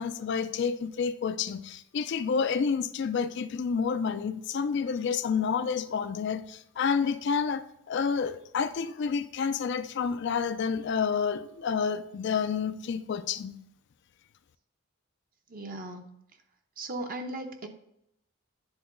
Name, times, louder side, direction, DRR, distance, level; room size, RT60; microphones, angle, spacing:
voice 1, 0.0-13.6, left 6 dB, 55° left, 11 dB, 0.3 m, -29 dB
voice 2, 15.5-16.1 16.8-17.7, right 1 dB, 40° right, 5 dB, 0.7 m, -37 dB
9.8 x 3.9 x 3.8 m, 0.78 s
head